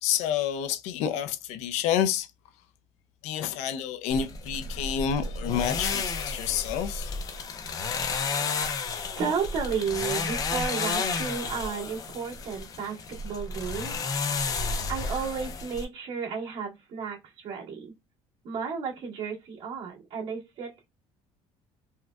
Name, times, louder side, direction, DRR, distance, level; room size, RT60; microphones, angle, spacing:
voice 1, 0.0-2.3 3.2-7.1, left 9 dB, 90° left, 0.4 m, -29 dB
sound 1, 4.1-15.8, left 4 dB, 35° left, 0.5 m, -32 dB
voice 2, 9.2-14.0 14.9-17.9 18.4-20.9, right 6 dB, 65° right, 1.9 m, -33 dB
4.2 x 2.2 x 2.3 m
cardioid pair, 150°, 11 cm